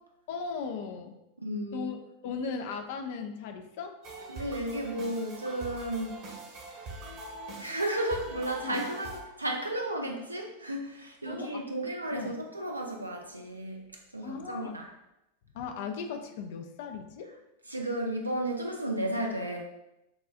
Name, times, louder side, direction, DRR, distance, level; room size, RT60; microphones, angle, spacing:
voice 1, 0.3-1.2 1.7-2.0 2.2-3.9 8.6-8.9 11.3-11.6 12.1-12.4 14.2-14.7 15.5-17.3, left 5 dB, 50° left, 5 dB, 0.4 m, -37 dB
voice 2, 1.4-1.9 4.3-6.1 6.9-7.0 7.6-13.8 14.1-14.9 17.7-19.6, right 1 dB, 85° right, 1 dB, 0.6 m, -33 dB
sound 1, 4.0-9.2, right 1 dB, 45° right, 1.1 m, -43 dB
6.1 x 2.3 x 2.5 m, 0.89 s
figure-of-eight pair, 90°, 0 cm